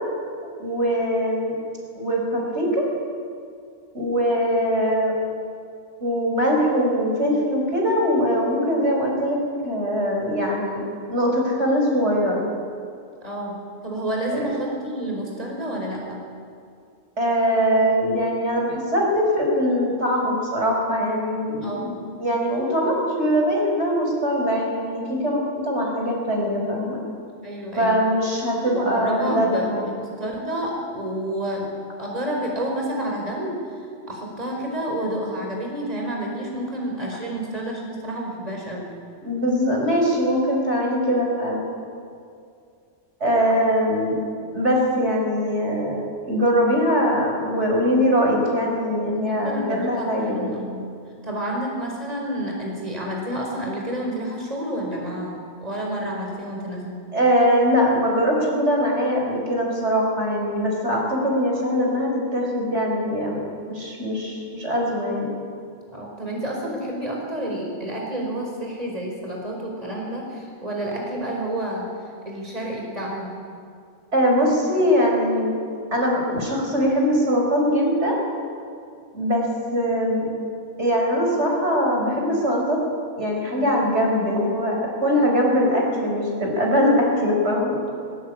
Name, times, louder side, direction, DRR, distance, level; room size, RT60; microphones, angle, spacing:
voice 1, 0.6-1.5 2.0-2.8 3.9-5.2 6.0-9.4 9.6-12.5 14.3-14.5 17.2-27.0 27.8-29.9 39.2-41.6 43.2-44.2 44.5-50.4 57.1-65.3 74.1-75.5 75.9-78.2 79.1-79.4 79.7-80.3 80.8-82.8 83.2-87.8, equal, 70° right, -1 dB, 5.9 m, -22 dB
voice 2, 13.2-13.6 13.8-16.2 21.6-22.0 27.4-28.0 28.6-31.7 32.0-33.6 34.1-38.9 49.2-50.9 51.2-57.0 65.9-71.9 72.2-73.3, right 1 dB, 35° right, -1 dB, 4.9 m, -29 dB
22.0 x 21.0 x 8.8 m, 2.4 s
omnidirectional pair, 1.2 m